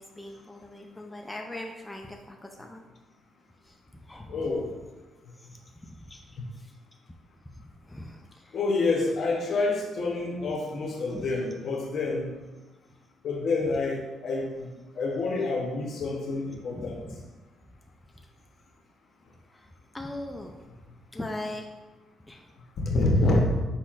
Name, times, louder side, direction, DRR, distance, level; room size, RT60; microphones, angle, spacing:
voice 1, 0.0-2.8 3.6-4.5 5.4-6.7 7.5-8.6 11.1-11.3 16.0-16.1 16.5-17.2 19.5-19.7 19.9-20.6 21.1-21.7 22.3-22.5, left 1 dB, 10° left, 2 dB, 0.4 m, -41 dB
voice 2, 4.3-4.7 8.5-12.4 13.2-17.0 22.8-23.7, left 2 dB, 60° left, 1 dB, 0.9 m, -27 dB
4.7 x 4.2 x 2.4 m, 1.2 s
cardioid pair, 90°, 0 cm